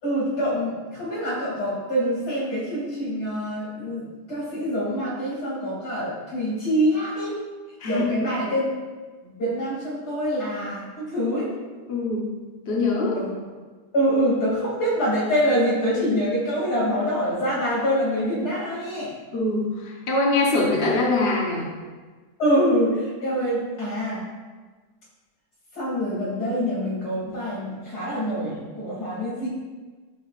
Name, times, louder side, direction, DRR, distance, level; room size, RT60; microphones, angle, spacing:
voice 1, 0.0-7.3 7.9-8.7 9.2-11.5 13.1-13.3 13.9-19.1 22.4-24.2 25.7-29.5, equal, 70° left, -6 dB, 3.4 m, -25 dB
voice 2, 7.8-8.2 11.9-13.2 19.3-21.7, left 2 dB, 45° left, -3 dB, 1.2 m, -23 dB
11.0 x 6.7 x 2.5 m, 1.4 s
omnidirectional pair, 1.7 m